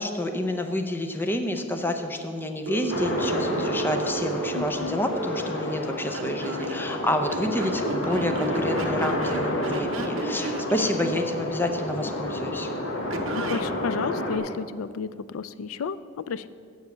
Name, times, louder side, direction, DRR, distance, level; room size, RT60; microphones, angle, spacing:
voice 1, 0.0-12.7, left 1 dB, 10° left, 5 dB, 0.6 m, -29 dB
Telephone, 2.7-5.4 6.1-6.7 7.3-11.0 13.1-13.6, right 4 dB, 65° right, 0.7 m, -33 dB
sound 1, 2.9-14.4, left 1 dB, 65° left, 1.4 m, -30 dB
voice 2, 4.5-5.0 10.8-11.2 13.5-16.5, left 5 dB, 90° left, 15 dB, 0.4 m, -32 dB
8.0 x 7.2 x 6.6 m, 2.2 s
head